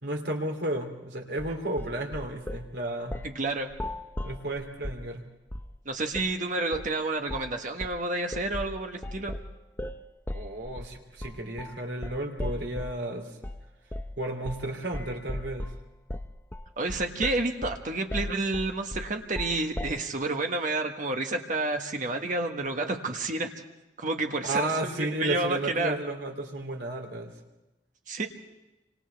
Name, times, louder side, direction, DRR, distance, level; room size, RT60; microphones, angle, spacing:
voice 1, 0.0-3.2 4.2-5.2 10.3-13.4 14.2-15.7 24.4-27.3, right 1 dB, 65° right, 2 dB, 3.0 m, -33 dB
sound 1, 1.4-2.7 3.1-3.4 3.7-5.1 5.5-5.8 6.1-6.3 6.7-7.0 7.3-7.6 7.8-13.0 13.4-13.6 13.9-14.2 14.5-14.7 14.9-20.1, left 1 dB, 10° left, 0.6 m, -37 dB
voice 2, 3.2-3.7 5.8-9.4 16.8-23.5 24.0-26.0 28.1-28.3, right 2 dB, 45° right, 4 dB, 1.5 m, -30 dB
29.5 x 25.5 x 3.5 m, 0.98 s
head